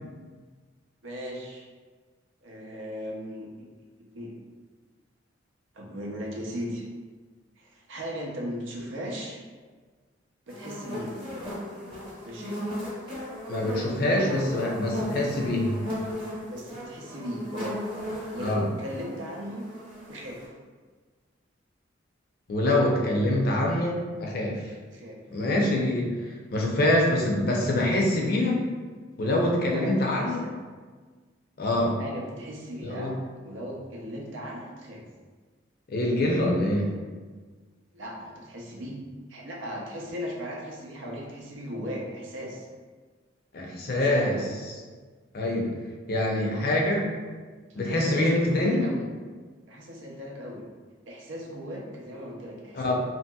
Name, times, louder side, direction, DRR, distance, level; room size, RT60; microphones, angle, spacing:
voice 1, 1.0-1.7 2.4-3.5 4.1-4.3 5.7-6.8 7.6-9.4 10.5-11.1 12.2-12.6 14.0-14.4 16.4-17.8 18.3-19.6 20.1-20.5 24.9-25.2 29.5-30.5 32.0-33.2 33.4-35.0 37.9-39.0 39.3-42.7 43.9-44.5 47.7-49.1 49.7-50.6 51.1-52.9, equal, 85° right, -2 dB, 0.6 m, -37 dB
sound 1, 10.5-20.4, left 1 dB, 25° right, 0.9 m, -37 dB
voice 2, 13.5-15.7 18.4-18.7 22.5-24.7 25.3-28.6 29.2-30.4 31.6-32.0 32.8-33.1 35.9-36.9 43.5-44.4 45.3-45.7 46.1-47.1 47.8-48.8 52.7-52.9, left 1 dB, 50° left, -1 dB, 0.5 m, -25 dB
2.9 x 2.7 x 2.2 m, 1.4 s
head